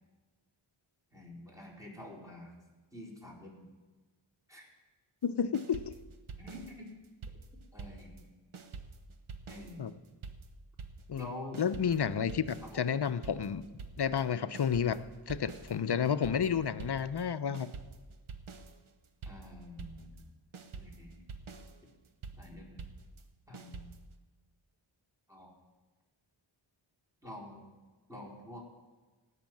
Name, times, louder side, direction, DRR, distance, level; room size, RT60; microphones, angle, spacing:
voice 1, 1.1-2.5 2.9-3.7 4.5-4.7 6.4-6.9 7.7-8.3 9.5-9.9 11.1-11.6 12.6-12.9 19.3-20.3 20.7-21.2 21.8-21.9 22.3-22.8 23.5-23.9 25.3-25.5 27.2-27.7 28.1-28.6, left 1 dB, 5° right, -4 dB, 4.4 m, -47 dB
voice 2, 5.2-6.0 9.8-9.9 11.1-11.3 11.6-13.7 14.0-15.0 15.3-17.7, left 7 dB, 55° left, 13 dB, 0.7 m, -31 dB
sound 1, 5.5-8.3 8.5-24.2, right 4 dB, 80° right, 1.1 m, -47 dB
17.5 x 6.5 x 7.8 m, 1.3 s
wide cardioid pair, 50°, 49 cm